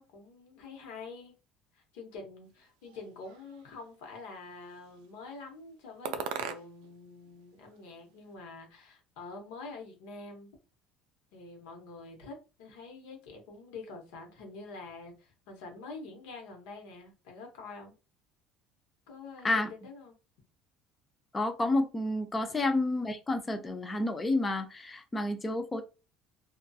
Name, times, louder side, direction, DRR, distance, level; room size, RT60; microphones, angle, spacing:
voice 1, 0.0-1.4 1.7-10.5 11.3-17.9 19.1-20.1, left 3 dB, 80° left, 3 dB, 0.9 m, -46 dB
sound 1, 2.8-3.9 4.5-5.2 6.0-7.0 7.3-8.3, right 7 dB, 80° right, 0.3 m, -41 dB
voice 2, 21.3-25.8, left 2 dB, 10° left, 7 dB, 0.3 m, -30 dB
2.3 x 2.3 x 2.6 m, 0.31 s
cardioid pair, 175°, 0 cm